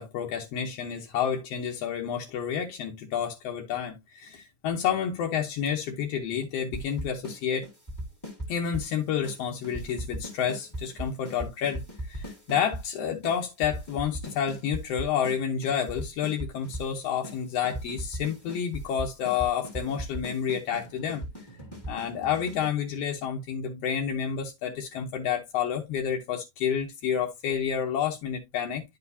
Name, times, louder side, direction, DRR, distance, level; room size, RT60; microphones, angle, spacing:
voice 1, 0.0-7.7 8.5-11.8 12.1-21.2 21.9-28.8, left 8 dB, 65° left, 1.6 m, -29 dB
sound 1, 6.7-7.4 7.6-8.9 9.2-9.4 9.6-12.8 13.2-13.3 13.6-15.4 15.6-16.9 17.2-17.4 17.6-22.7, right 1 dB, 15° left, 0.8 m, -38 dB
10.5 x 4.9 x 2.7 m
omnidirectional pair, 4.0 m